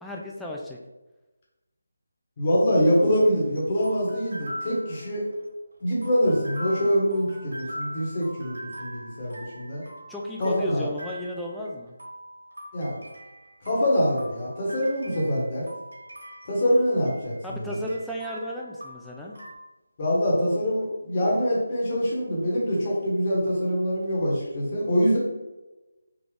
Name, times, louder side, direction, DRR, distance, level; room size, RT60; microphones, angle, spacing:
voice 1, 0.0-0.8 10.1-12.0 17.4-19.4, left 1 dB, 5° left, -3 dB, 0.3 m, -34 dB
voice 2, 2.4-5.2 5.8-9.8 10.4-10.9 12.7-13.0 13.6-15.7 16.4-17.8 20.0-25.2, equal, 30° left, -5 dB, 1.2 m, -24 dB
sound 1, 2.9-19.5, equal, 85° right, 1.3 m, -42 dB
3.8 x 2.4 x 3.3 m, 1.1 s
figure-of-eight pair, 160°, 0 cm